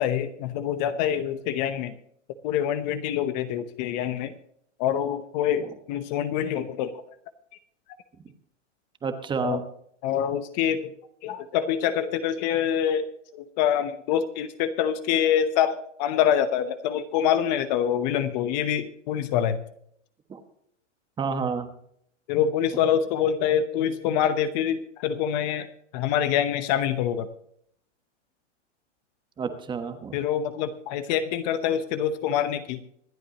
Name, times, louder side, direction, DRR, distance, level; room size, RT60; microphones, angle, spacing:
voice 1, 0.0-2.0 2.4-4.4 4.8-7.0 9.4-9.6 10.0-10.9 11.2-19.6 22.3-27.3 30.1-32.8, left 9 dB, 35° left, 12 dB, 0.9 m, -25 dB
voice 2, 9.0-9.6 20.3-20.4 21.2-21.7 29.4-30.2, right 5 dB, 15° right, 8 dB, 1.2 m, -29 dB
25.5 x 8.5 x 2.9 m, 0.69 s
hypercardioid pair, 145°, 37 cm